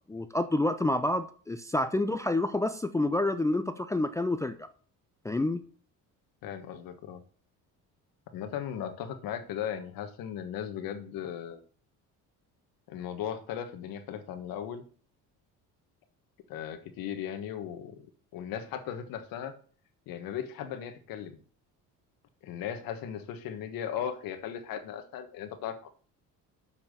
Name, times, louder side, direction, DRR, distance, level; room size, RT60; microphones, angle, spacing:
voice 1, 0.1-4.6 5.2-5.6, left 2 dB, 10° left, 9 dB, 0.4 m, -28 dB
voice 2, 6.4-7.2 8.3-11.6 12.9-14.8 16.5-18.1 18.3-19.5 20.1-21.4 22.4-25.9, left 9 dB, 75° left, 8 dB, 1.5 m, -37 dB
6.9 x 5.8 x 6.7 m, 0.43 s
cardioid pair, 125°, 35 cm